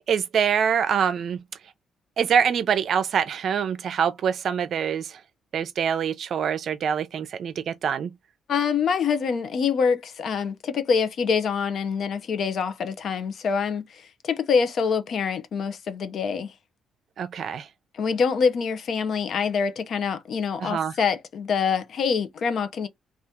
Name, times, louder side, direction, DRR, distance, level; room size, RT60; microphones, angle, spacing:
voice 1, 0.1-1.4 2.2-5.2 5.5-8.1 17.2-17.7 20.6-20.9, right 7 dB, 60° right, 0.5 m, -25 dB
voice 2, 8.5-16.5 17.9-22.9, left 6 dB, 60° left, 0.6 m, -25 dB
2.8 x 2.4 x 3.4 m
cardioid pair, 90°, 0 cm